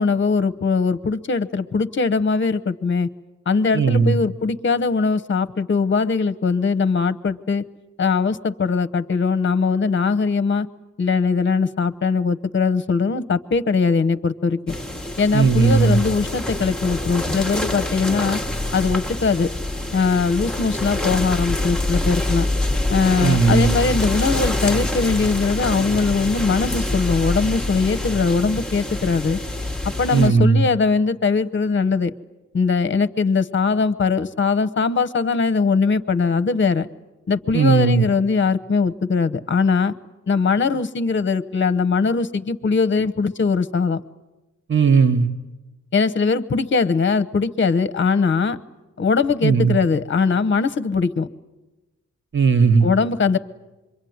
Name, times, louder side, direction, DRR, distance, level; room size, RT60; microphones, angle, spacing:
voice 1, 0.0-3.1 3.5-7.6 8.0-10.7 11.0-14.7 15.2-18.4 18.7-19.5 19.9-22.5 22.9-29.4 30.0-32.1 32.5-36.9 37.3-39.9 40.3-44.0 45.9-48.6 49.0-51.3 52.8-53.4, left 4 dB, 40° left, 12 dB, 1.0 m, -21 dB
voice 2, 3.7-4.1 15.3-16.0 23.2-23.7 30.1-30.6 37.5-38.0 44.7-45.3 49.4-49.8 52.3-52.9, right 5 dB, 40° right, 7 dB, 1.5 m, -16 dB
sound 1, 14.7-30.3, left 1 dB, 5° left, 1.2 m, -25 dB
26.5 x 23.5 x 9.5 m, 1.1 s
wide cardioid pair, 130°, 30 cm